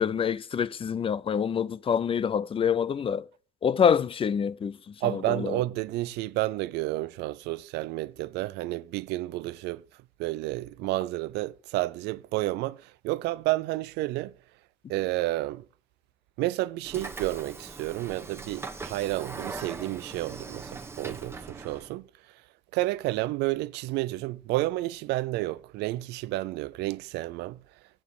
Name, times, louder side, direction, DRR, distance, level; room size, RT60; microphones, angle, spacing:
voice 1, 0.0-3.3 3.6-5.6, left 7 dB, 30° left, 0.5 m, -26 dB
voice 2, 5.0-9.8 10.2-14.3 14.9-15.6 16.4-22.1 22.7-27.6, right 18 dB, 90° right, 0.6 m, -30 dB
Train / Sliding door, 16.8-21.9, right 3 dB, 15° right, 1.3 m, -40 dB
8.7 x 7.3 x 7.8 m
cardioid pair, 110°, 17 cm